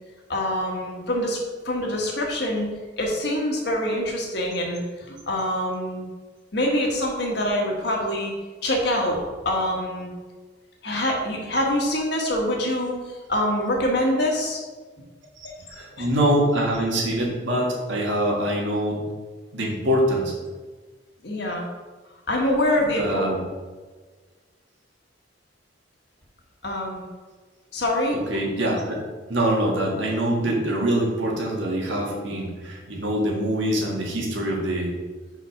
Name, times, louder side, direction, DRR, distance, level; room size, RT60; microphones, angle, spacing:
voice 1, 0.3-2.7 3.0-6.0 6.5-8.3 8.6-10.1 10.8-13.0 13.3-14.6 15.9-16.1 21.2-21.7 22.3-23.2 26.6-27.0 27.7-28.2, left 1 dB, 55° left, 0 dB, 1.4 m, -25 dB
voice 2, 15.4-19.0 19.5-20.3 23.0-23.4 28.3-29.0 29.3-34.9, right 1 dB, 70° right, -2 dB, 1.8 m, -24 dB
5.3 x 5.2 x 5.8 m, 1.4 s
head